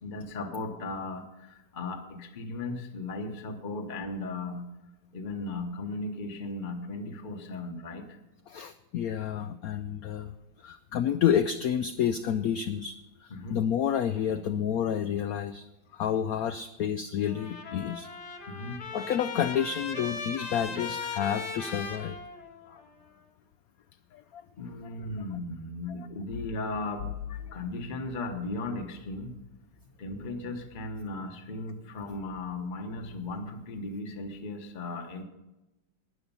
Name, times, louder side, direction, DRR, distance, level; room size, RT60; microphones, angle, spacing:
voice 1, 0.0-4.7 5.1-8.2 13.3-13.6 18.5-18.9 20.7-20.8 24.6-27.1 27.5-29.4 30.0-35.2, left 2 dB, 30° left, 4 dB, 1.0 m, -36 dB
voice 2, 8.5-10.3 10.6-15.7 15.9-18.1 18.9-22.2 22.7-22.8 24.1-24.4 27.5-27.6, left 9 dB, 80° left, 11 dB, 0.8 m, -29 dB
Trumpet, 17.3-22.9, left 5 dB, 60° left, 1.8 m, -38 dB
13.0 x 10.0 x 5.5 m, 0.99 s
omnidirectional pair, 2.1 m